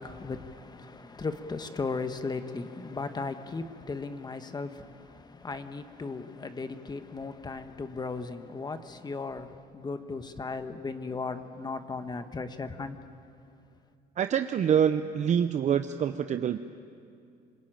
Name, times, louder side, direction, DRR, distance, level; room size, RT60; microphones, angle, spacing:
voice 1, 0.0-13.0, left 4 dB, 25° left, 1.3 m, -36 dB
voice 2, 14.2-16.6, right 8 dB, 45° right, 0.7 m, -26 dB
27.0 x 20.0 x 9.1 m
cardioid pair, 110°, 17 cm